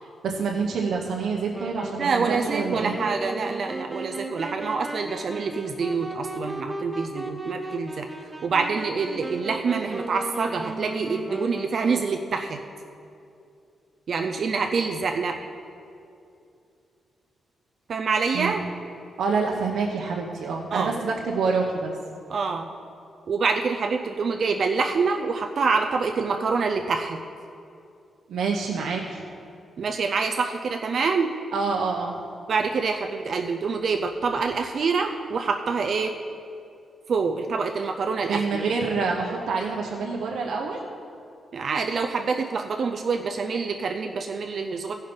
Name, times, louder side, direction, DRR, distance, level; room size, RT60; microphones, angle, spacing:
voice 1, 0.2-3.0 18.3-18.6 19.2-21.9 28.3-29.2 31.5-32.2 38.3-40.8, right 4 dB, 80° right, -1 dB, 0.9 m, -27 dB
Wind instrument woodwind instrument, 1.5-12.4, right 1 dB, 5° right, 0.7 m, -35 dB
voice 2, 2.0-8.1 8.4-12.6 14.1-15.4 17.9-18.6 20.7-21.0 22.3-22.7 23.3-27.2 29.8-31.3 32.5-36.1 37.1-38.6 41.5-44.9, right 4 dB, 50° right, 4 dB, 0.4 m, -26 dB
15.0 x 5.5 x 5.2 m, 2.6 s
wide cardioid pair, 160°, 0 cm